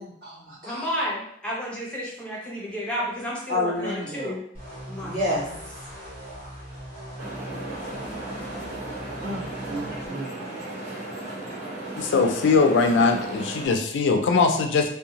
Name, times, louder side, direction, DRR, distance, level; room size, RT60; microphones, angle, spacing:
voice 1, 0.0-0.9 3.5-4.3 5.0-5.4 9.2-10.4, left 1 dB, 50° right, -9 dB, 1.3 m, -30 dB
voice 2, 0.7-4.4 4.9-5.5, equal, 5° left, -6 dB, 0.6 m, -31 dB
sound 1, 4.5-10.1, equal, 30° right, 1.0 m, -40 dB
sound 2, 7.2-13.7, right 2 dB, 70° right, 1.4 m, -35 dB
voice 3, 12.0-14.9, left 4 dB, 70° left, 5 dB, 0.3 m, -21 dB
2.6 x 2.2 x 2.8 m, 0.69 s
head